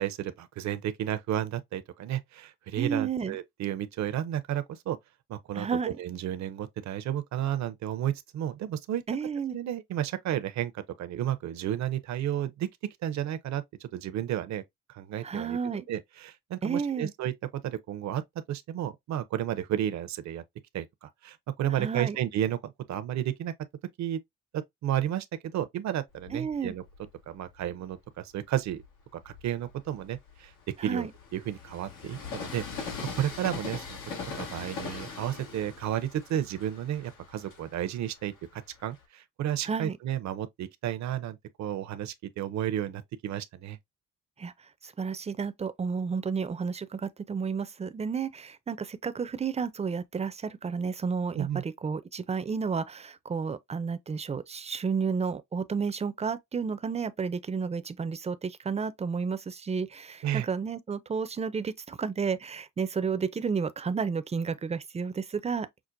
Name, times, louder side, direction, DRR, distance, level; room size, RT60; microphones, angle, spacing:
voice 1, 0.0-5.0 5.3-9.0 9.5-12.7 13.0-14.6 14.9-15.6 15.9-17.3 17.6-18.2 18.5-20.4 20.7-23.5 24.0-24.2 24.5-25.3 25.5-26.8 27.3-28.8 29.2-30.5 30.8-32.9 33.1-34.0 34.4-43.8 51.3-51.6 60.2-60.5, right 11 dB, 65° right, 0.7 m, -32 dB
voice 2, 2.7-3.4 5.5-6.0 9.1-9.6 15.2-15.9 16.6-17.1 21.7-22.2 26.3-26.7 30.8-31.1 39.6-40.0 44.4-44.5 44.8-65.7, right 5 dB, 20° right, 0.5 m, -31 dB
Train, 26.2-27.8 28.4-39.0, left 5 dB, 90° left, 1.7 m, -42 dB
5.9 x 2.1 x 2.5 m
cardioid pair, 90°, 30 cm